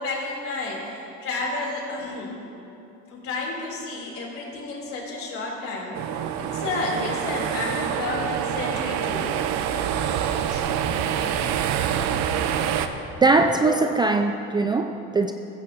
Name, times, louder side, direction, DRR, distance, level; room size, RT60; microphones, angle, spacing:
voice 1, 0.0-2.4 3.1-6.0 6.4-9.3 10.5-10.6 13.6-13.9, left 3 dB, 50° left, -2 dB, 3.2 m, -31 dB
sound 1, 5.9-12.9, right 9 dB, 70° right, 0.8 m, -26 dB
voice 2, 13.2-15.3, right 3 dB, 15° right, 5 dB, 0.4 m, -21 dB
15.5 x 15.0 x 2.8 m, 2.8 s
cardioid pair, 130°, 29 cm